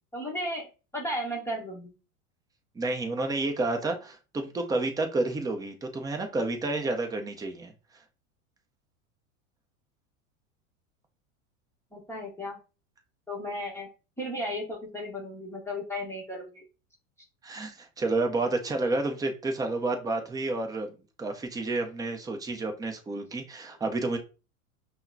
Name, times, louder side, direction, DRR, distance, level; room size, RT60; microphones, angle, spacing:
voice 1, 0.1-0.7 0.9-1.9 11.9-12.6 13.3-13.9 14.2-16.6, equal, 5° left, 0.9 m, -34 dB
voice 2, 2.8-7.7 17.4-20.9 21.2-24.2, right 2 dB, 10° right, 0.5 m, -30 dB
5.5 x 2.1 x 2.5 m
hypercardioid pair, 110°, 42 cm